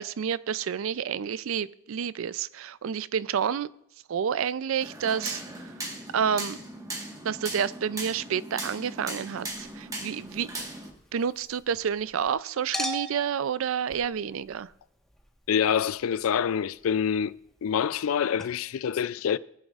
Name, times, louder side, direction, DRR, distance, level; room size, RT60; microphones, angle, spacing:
voice 1, 0.0-3.7 4.1-5.4 6.1-6.6 7.2-10.5 11.1-14.7, right 7 dB, 75° right, 0.4 m, -29 dB
sound 1, 4.8-10.9, right 2 dB, 15° right, 1.4 m, -38 dB
Chink clink, 9.4-12.3 12.7-18.1 18.4-18.5, equal, ahead, 1.2 m, -42 dB
voice 2, 15.5-17.3 17.6-19.4, left 8 dB, 80° left, 0.4 m, -26 dB
19.0 x 10.5 x 2.4 m
head